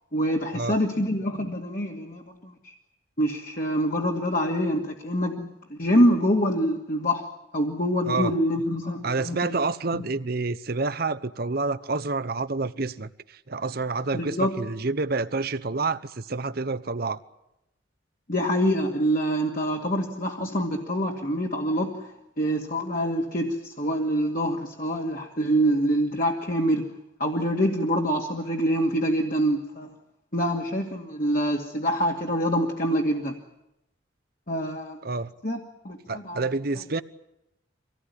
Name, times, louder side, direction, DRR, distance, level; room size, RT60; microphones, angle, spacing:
voice 1, 0.1-2.7 3.2-7.3 7.5-9.5 9.9-10.0 14.1-14.5 18.3-26.9 27.2-29.9 30.3-33.4 34.5-35.0 35.4-36.4, equal, 45° left, 0 dB, 2.3 m, -25 dB
voice 2, 9.0-17.2 35.0-35.3 36.1-37.0, right 3 dB, 50° right, 12 dB, 0.9 m, -28 dB
25.0 x 18.0 x 9.9 m, 0.88 s
head